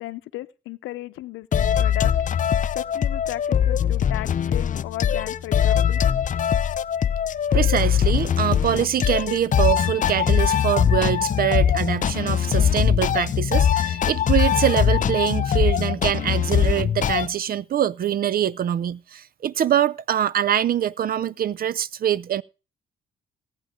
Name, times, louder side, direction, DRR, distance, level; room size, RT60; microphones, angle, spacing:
voice 1, 0.0-2.5 2.7-6.0, left 16 dB, 90° left, 0.7 m, -36 dB
sound 1, 1.5-17.3, left 9 dB, 40° left, 0.5 m, -21 dB
voice 2, 7.5-22.4, right 10 dB, 50° right, 0.5 m, -24 dB
18.0 x 9.0 x 3.7 m
cardioid pair, 90°, 20 cm